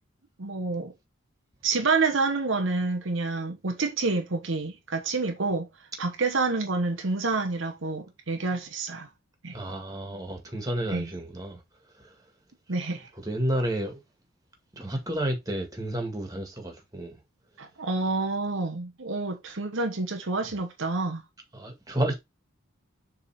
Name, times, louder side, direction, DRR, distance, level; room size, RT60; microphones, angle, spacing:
voice 1, 0.4-0.9 1.6-9.1 9.4-9.6 10.9-11.1 12.7-13.1 17.6-21.2, right 3 dB, 70° right, 1.1 m, -28 dB
voice 2, 9.5-11.6 11.9-12.2 13.2-14.0 14.7-17.2 21.5-22.1, right 1 dB, 15° right, 2.0 m, -31 dB
7.0 x 3.7 x 4.7 m
head